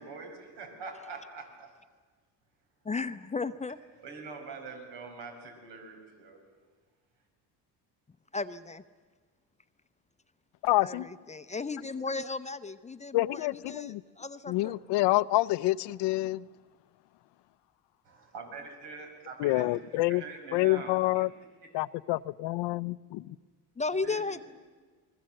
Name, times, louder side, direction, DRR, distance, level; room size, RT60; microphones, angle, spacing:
voice 1, 0.0-1.7 4.0-6.4 18.0-21.3 23.9-24.4, right 4 dB, 80° right, 3 dB, 6.2 m, -44 dB
voice 2, 2.8-3.8 8.3-8.8 10.8-14.7 19.5-19.7 23.8-24.4, left 4 dB, 15° left, 10 dB, 0.7 m, -35 dB
voice 3, 10.6-11.1 13.1-14.0 14.5-16.5 19.4-20.2 20.5-21.3 21.7-23.4, left 18 dB, 85° left, 17 dB, 0.7 m, -27 dB
28.5 x 21.0 x 7.7 m, 1.4 s
cardioid pair, 120°, 41 cm